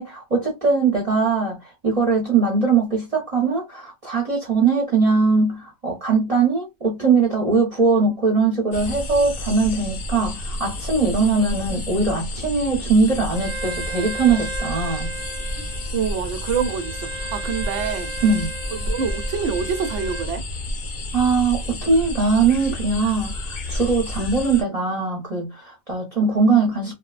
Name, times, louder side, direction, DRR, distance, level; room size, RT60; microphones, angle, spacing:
voice 1, 0.0-1.6 1.8-15.1 18.2-18.5 21.1-26.9, right 4 dB, 35° right, 0.8 m, -21 dB
sound 1, 8.7-24.6, left 1 dB, 50° left, 0.6 m, -31 dB
Bowed string instrument, 13.3-20.3, right 4 dB, 15° right, 1.0 m, -35 dB
voice 2, 15.9-18.1 18.7-20.4, right 6 dB, 80° right, 0.9 m, -26 dB
3.0 x 2.1 x 2.3 m
omnidirectional pair, 1.2 m